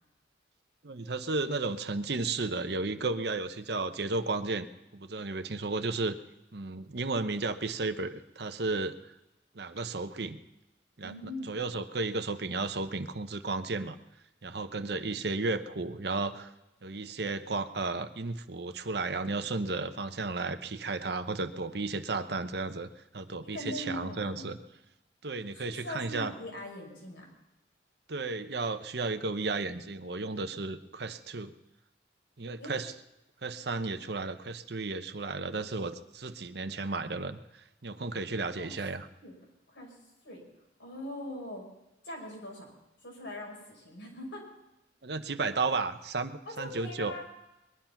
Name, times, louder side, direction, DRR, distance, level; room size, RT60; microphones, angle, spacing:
voice 1, 0.8-4.7 4.9-6.1 6.5-8.9 9.5-10.4 11.0-11.1 11.5-14.0 14.4-16.5 16.8-22.9 23.1-24.6 25.2-26.3 28.1-31.5 32.4-32.9 33.4-37.4 37.8-39.1 45.0-47.2, right 3 dB, 60° right, 9 dB, 0.9 m, -33 dB
voice 2, 11.0-11.6 23.5-24.5 25.5-27.3 32.6-32.7 38.6-38.7 39.2-39.3 39.7-40.0 40.2-40.4 40.8-41.7 42.0-42.7 43.0-44.5 46.5-47.2, left 1 dB, 80° left, -1 dB, 6.0 m, -41 dB
21.0 x 11.5 x 5.9 m, 0.95 s
head